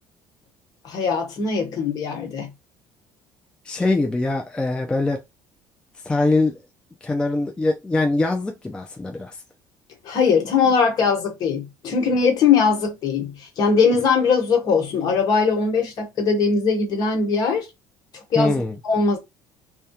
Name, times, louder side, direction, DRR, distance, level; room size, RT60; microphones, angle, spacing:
voice 1, 0.8-2.5 10.0-17.7 18.3-18.5 18.8-19.2, left 5 dB, 50° left, 1.1 m, -20 dB
voice 2, 3.7-5.2 6.0-6.6 7.0-9.4 18.4-18.8, left 2 dB, 10° left, 0.4 m, -22 dB
2.3 x 2.2 x 2.8 m
cardioid pair, 120°, 8 cm